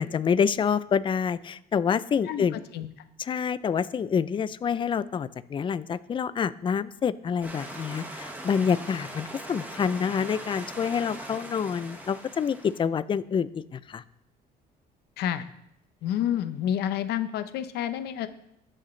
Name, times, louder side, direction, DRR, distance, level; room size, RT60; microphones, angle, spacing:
voice 1, 0.0-2.6 3.2-14.0, left 7 dB, 30° left, 16 dB, 0.4 m, -27 dB
voice 2, 2.2-2.9 15.2-15.5 16.0-18.3, left 10 dB, 75° left, 11 dB, 0.8 m, -29 dB
sound 1, 7.4-12.8, right 1 dB, 10° right, 1.6 m, -40 dB
19.0 x 6.5 x 3.3 m, 0.79 s
cardioid pair, 110°, 17 cm